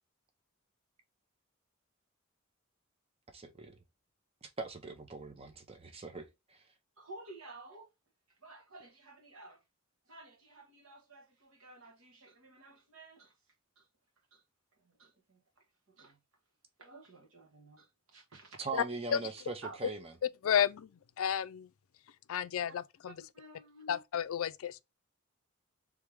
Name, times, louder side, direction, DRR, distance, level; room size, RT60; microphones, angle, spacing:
voice 1, 3.3-3.7 4.4-6.6 18.6-20.0, right 3 dB, 30° right, 0.7 m, -41 dB
voice 2, 7.0-7.9 8.4-9.6 10.1-13.3 13.8-13.9 14.3-14.4 14.8-15.4 15.9-16.2 16.8-18.6 19.6-19.8 22.6-22.7 23.0-24.0, right 2 dB, 75° right, 1.4 m, -53 dB
voice 3, 20.4-20.9 21.2-21.7 22.3-23.2 23.9-24.8, left 8 dB, 70° left, 0.4 m, -31 dB
3.5 x 3.4 x 3.2 m
head